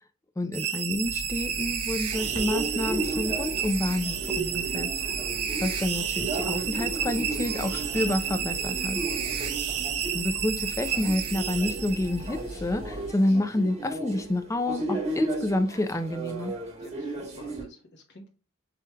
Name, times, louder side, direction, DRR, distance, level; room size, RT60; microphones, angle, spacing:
voice 1, 0.4-4.9 5.6-9.0 10.1-16.5, left 1 dB, 15° left, 7 dB, 0.3 m, -28 dB
sound 1, 0.5-12.4, right 8 dB, 80° right, 0.8 m, -31 dB
sound 2, 1.0-13.1, left 1 dB, 85° left, 0.8 m, -41 dB
sound 3, 2.1-17.6, right 2 dB, 30° right, 1.2 m, -35 dB
voice 2, 8.9-9.5 16.8-18.3, left 1 dB, 50° left, 3 dB, 0.9 m, -51 dB
6.9 x 3.2 x 2.2 m, 0.33 s
head